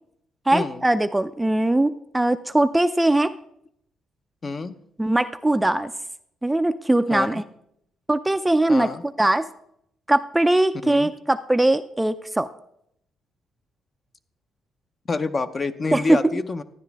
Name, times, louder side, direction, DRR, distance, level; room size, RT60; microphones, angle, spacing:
voice 1, 0.5-3.3 5.0-5.9 6.4-7.4 8.1-8.9 9.2-9.4 10.1-12.5 15.9-16.2, right 1 dB, 10° right, 11 dB, 0.4 m, -20 dB
voice 2, 4.4-4.8 7.1-7.3 8.7-9.0 10.8-11.1 15.1-16.6, left 3 dB, 35° left, 10 dB, 0.6 m, -27 dB
13.0 x 9.6 x 3.4 m, 0.74 s
cardioid pair, 90°, 0 cm